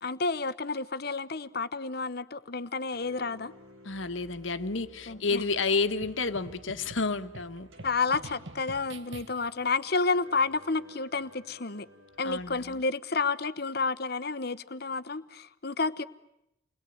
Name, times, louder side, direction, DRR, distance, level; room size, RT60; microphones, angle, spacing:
voice 1, 0.0-3.5 5.1-5.4 7.8-11.9 12.2-16.0, left 4 dB, 50° left, 1.0 m, -30 dB
sound 1, 2.9-12.5, equal, 80° right, 4.0 m, -55 dB
voice 2, 3.8-7.7 12.2-12.8, left 4 dB, 70° left, 1.4 m, -30 dB
sound 2, 6.0-9.7, right 2 dB, 60° right, 1.3 m, -47 dB
29.0 x 21.0 x 9.3 m
head